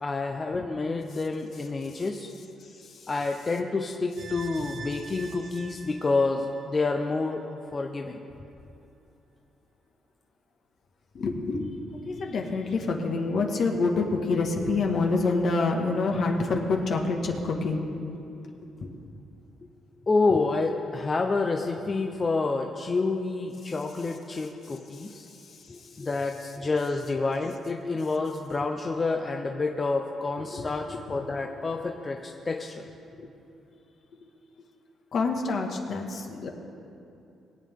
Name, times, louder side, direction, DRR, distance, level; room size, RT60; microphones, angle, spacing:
voice 1, 0.0-2.3 3.1-7.4 7.7-8.2 20.1-25.2 25.7-32.8, left 3 dB, 30° left, 3 dB, 0.7 m, -28 dB
sound 1, 4.2-7.4 7.7-7.8, right 4 dB, 75° right, 1.4 m, -44 dB
voice 2, 11.1-11.7 12.0-17.8 18.8-18.9 30.6-31.0 33.2-33.3 35.1-36.5, left 3 dB, 60° left, 2 dB, 1.6 m, -27 dB
21.5 x 8.5 x 3.7 m, 2.8 s
cardioid pair, 90°, 0 cm